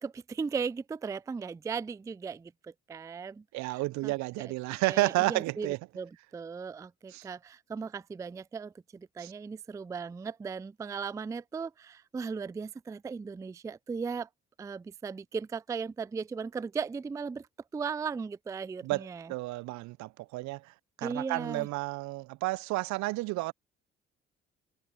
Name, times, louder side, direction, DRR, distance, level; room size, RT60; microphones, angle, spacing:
voice 1, 0.0-4.5 4.8-14.3 14.6-17.5 17.7-19.3 21.0-21.7, right 5 dB, 10° right, 0.3 m, -37 dB
voice 2, 3.5-5.8 7.1-7.3 9.2-9.3 18.8-20.7 21.0-23.5, right 21 dB, 60° right, 0.6 m, -31 dB
figure-of-eight pair, 45°, 32 cm